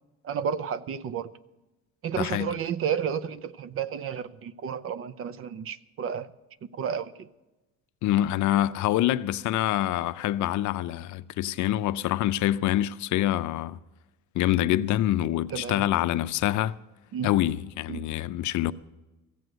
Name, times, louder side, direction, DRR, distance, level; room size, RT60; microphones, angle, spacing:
voice 1, 0.2-1.3 2.0-6.3 6.6-7.3 15.5-15.8 17.1-17.3 17.9-18.1, right 7 dB, 45° right, 0.6 m, -32 dB
voice 2, 2.2-2.5 8.0-13.8 14.3-16.7 17.2-18.7, left 13 dB, 65° left, 0.5 m, -26 dB
15.0 x 7.9 x 7.7 m
cardioid pair, 150°, 32 cm